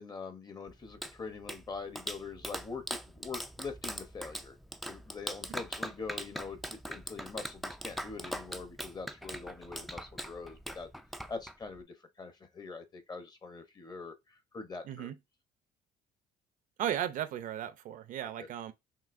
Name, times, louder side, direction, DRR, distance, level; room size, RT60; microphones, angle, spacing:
voice 1, 0.0-4.6 4.9-10.9 11.3-11.9 12.2-15.1 18.4-18.5, left 4 dB, 25° left, 0.8 m, -43 dB
Clapping, 0.7-11.8, equal, ahead, 0.3 m, -41 dB
voice 2, 14.8-15.2 16.8-18.7, right 10 dB, 60° right, 0.6 m, -35 dB
5.8 x 2.8 x 2.5 m
cardioid pair, 115°, 16 cm